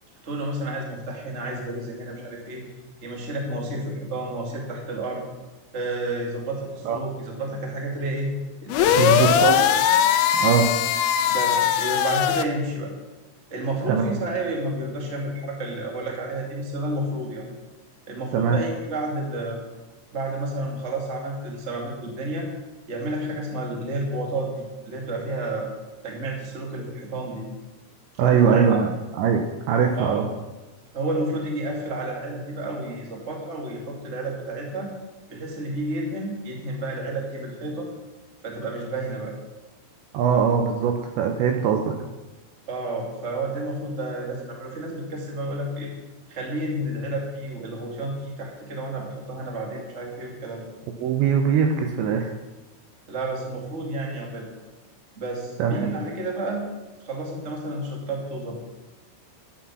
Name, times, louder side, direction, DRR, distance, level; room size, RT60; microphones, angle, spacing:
voice 1, 0.2-2.6 3.0-5.2 5.7-8.3 8.6-9.7 11.3-12.9 13.5-17.4 18.1-19.6 20.1-22.5 22.9-25.7 26.0-27.5 28.1-28.6 29.9-30.2 30.9-34.9 35.3-37.9 38.4-39.3 42.7-45.9 46.3-50.7 53.1-54.4 55.1-56.6 57.0-58.5, right 1 dB, 35° right, -1 dB, 1.0 m, -30 dB
sound 1, 8.7-12.4, left 9 dB, 80° left, 2.7 m, -20 dB
voice 2, 9.0-9.6 10.3-10.7 13.9-14.2 18.3-18.6 28.2-29.4 29.7-30.3 40.1-42.0 51.0-52.3 55.6-55.9, right 7 dB, 80° right, 4 dB, 2.7 m, -21 dB
12.0 x 10.0 x 6.1 m, 1.2 s
omnidirectional pair, 5.9 m